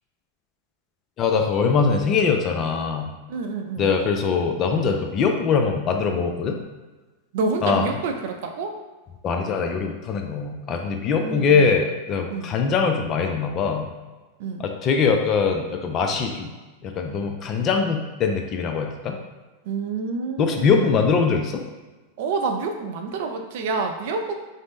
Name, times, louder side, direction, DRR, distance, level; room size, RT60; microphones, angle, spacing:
voice 1, 1.2-3.1 3.8-6.6 7.6-7.9 9.2-13.9 14.6-16.5 16.8-19.2 20.4-21.6, left 5 dB, 35° left, 4 dB, 0.4 m, -22 dB
voice 2, 3.3-3.9 7.3-8.8 11.2-11.6 12.3-12.5 14.4-14.7 19.7-20.9 22.2-24.4, right 4 dB, 60° right, 4 dB, 0.4 m, -28 dB
2.6 x 2.0 x 3.4 m, 1.2 s
hypercardioid pair, 100°, 0 cm